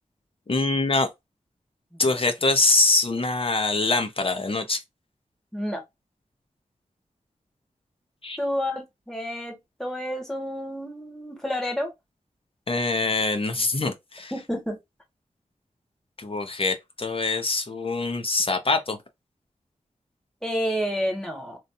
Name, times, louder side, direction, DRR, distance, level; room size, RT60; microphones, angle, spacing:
voice 1, 0.5-1.1 2.0-4.8 8.2-8.4 12.7-14.3 16.2-19.0, left 3 dB, 45° left, 0.9 m, -24 dB
voice 2, 1.9-2.2 5.5-5.8 8.4-11.9 14.3-14.8 20.4-21.6, equal, 5° left, 1.5 m, -30 dB
3.1 x 2.7 x 2.7 m
wide cardioid pair, 70°, 13 cm